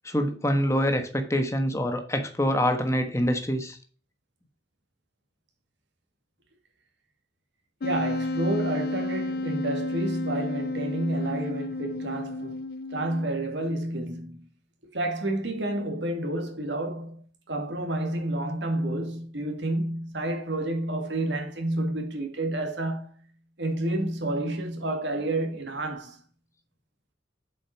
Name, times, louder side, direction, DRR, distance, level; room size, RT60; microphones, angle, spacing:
voice 1, 0.0-3.8, equal, 15° left, 1.3 m, -25 dB
Wind instrument woodwind instrument, 7.8-13.5, left 2 dB, 55° left, 0.5 m, -32 dB
voice 2, 7.8-12.6 12.9-14.5 14.9-23.2 23.6-26.2, right 1 dB, 75° right, 2.1 m, -30 dB
7.8 x 5.2 x 5.8 m
head